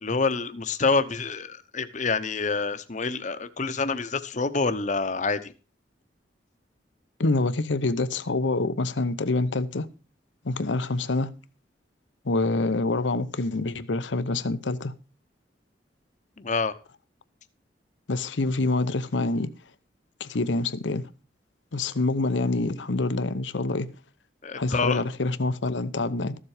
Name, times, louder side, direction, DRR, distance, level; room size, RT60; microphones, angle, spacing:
voice 1, 0.0-5.5 16.4-16.7 24.4-25.0, left 4 dB, 45° left, 0.9 m, -27 dB
voice 2, 7.2-9.9 10.4-11.3 12.2-14.9 18.1-19.5 20.2-21.1 21.7-23.9 24.6-26.4, left 2 dB, 90° left, 0.8 m, -26 dB
14.0 x 7.4 x 4.9 m
head